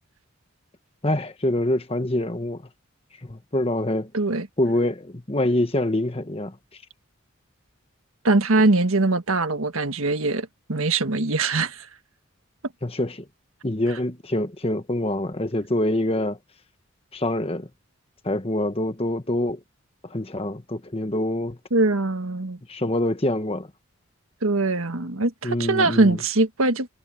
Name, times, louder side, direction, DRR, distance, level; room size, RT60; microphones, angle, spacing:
voice 1, 1.0-2.6 3.2-4.1 4.6-6.6 12.8-13.3 13.6-16.4 17.1-17.7 18.2-19.6 20.0-21.6 22.7-23.7 25.4-26.2, left 1 dB, 30° left, 1.3 m, -25 dB
voice 2, 4.1-4.5 8.2-11.9 21.7-22.6 24.4-26.9, right 2 dB, 85° right, 1.6 m, -22 dB
head